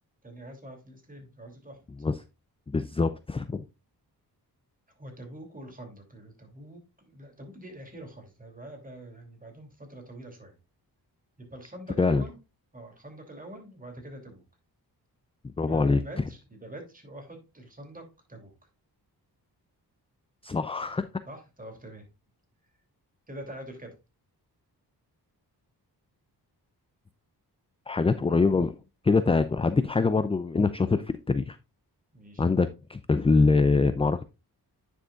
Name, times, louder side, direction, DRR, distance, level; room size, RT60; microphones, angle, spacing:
voice 1, 0.2-1.8 4.9-10.6 11.4-12.4 12.7-14.4 15.5-18.0 18.3-18.5 21.3-22.1 23.3-24.0 28.2-28.4 32.1-32.5, right 1 dB, 20° right, 3 dB, 2.9 m, -45 dB
voice 2, 2.7-3.6 12.0-12.2 15.6-16.0 20.4-21.1 27.9-28.8 29.0-31.6 32.4-34.2, left 4 dB, 15° left, 13 dB, 0.4 m, -24 dB
9.7 x 6.4 x 2.4 m, 0.27 s
cardioid pair, 80°, 39 cm